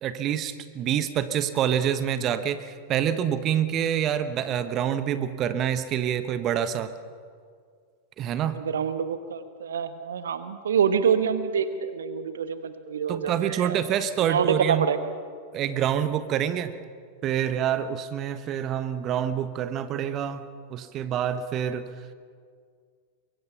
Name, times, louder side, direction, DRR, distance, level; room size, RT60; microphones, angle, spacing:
voice 1, 0.0-6.9 8.2-8.6 13.1-14.9 15.5-16.7 17.2-20.4 20.7-21.8, right 9 dB, 35° right, 12 dB, 1.1 m, -27 dB
voice 2, 8.5-13.8 14.3-15.0, right 7 dB, 65° right, 11 dB, 1.1 m, -26 dB
23.5 x 23.5 x 5.8 m, 2.1 s
figure-of-eight pair, 90°, 0 cm